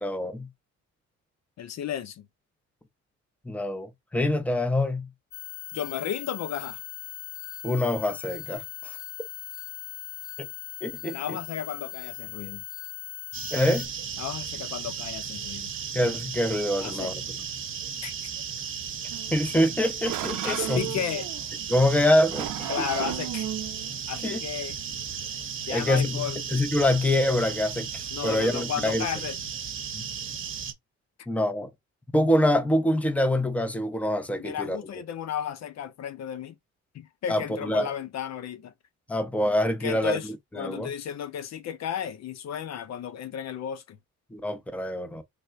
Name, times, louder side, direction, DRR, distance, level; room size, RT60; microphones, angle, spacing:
voice 1, 0.0-0.5 3.5-5.1 7.6-9.0 10.8-11.2 13.5-13.9 15.9-17.1 19.3-20.8 21.7-22.5 24.2-24.4 25.7-26.3 26.5-29.1 29.9-30.0 31.3-31.7 32.1-34.8 37.3-37.9 39.1-40.2 40.5-40.9 44.3-45.2, left 1 dB, 5° left, 0.7 m, -25 dB
voice 2, 1.6-2.3 5.7-6.8 11.1-12.6 14.2-15.7 16.8-17.1 18.0-18.3 20.4-21.3 22.7-23.5 24.1-24.8 25.7-26.4 28.1-29.4 34.4-36.6 36.9-38.7 39.8-40.3 40.6-44.0, left 9 dB, 60° left, 0.6 m, -33 dB
sound 1, 5.3-13.9, left 17 dB, 45° left, 1.1 m, -40 dB
sound 2, 13.3-30.7, right 7 dB, 45° right, 0.9 m, -35 dB
sound 3, 19.1-25.7, right 13 dB, 85° right, 0.6 m, -36 dB
3.4 x 2.4 x 4.4 m
cardioid pair, 90°, 30 cm